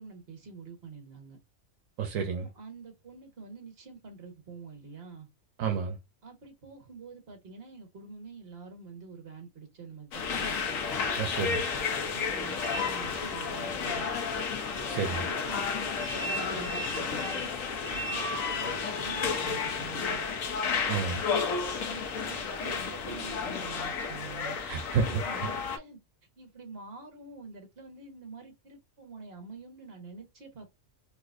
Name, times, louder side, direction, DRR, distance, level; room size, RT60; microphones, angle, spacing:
voice 1, 0.0-1.4 2.3-5.3 6.2-10.6 12.0-14.1 14.9-17.5 17.9-20.2 21.1-24.6 25.1-26.0 26.4-30.7, right 4 dB, 50° right, 1.5 m, -47 dB
voice 2, 2.0-2.5 5.6-6.0 11.2-11.6 14.8-15.2 20.9-21.2 24.7-25.2, right 6 dB, 80° right, 1.0 m, -30 dB
sound 1, 10.1-25.8, left 5 dB, 85° left, 1.1 m, -32 dB
3.9 x 2.6 x 2.5 m
omnidirectional pair, 1.3 m